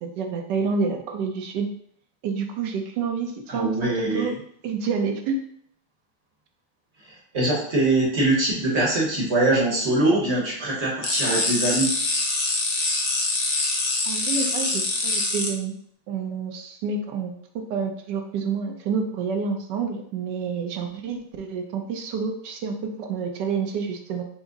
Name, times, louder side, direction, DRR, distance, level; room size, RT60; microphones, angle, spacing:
voice 1, 0.0-1.7 2.2-4.3 4.6-5.4 14.1-15.7 16.1-24.2, right 5 dB, 70° right, 4 dB, 1.1 m, -28 dB
voice 2, 3.5-4.3 7.1-11.9, right 2 dB, 40° right, -4 dB, 1.1 m, -23 dB
sound 1, 11.0-15.5, left 2 dB, 60° left, 1.0 m, -24 dB
5.9 x 2.1 x 3.9 m, 0.64 s
omnidirectional pair, 2.2 m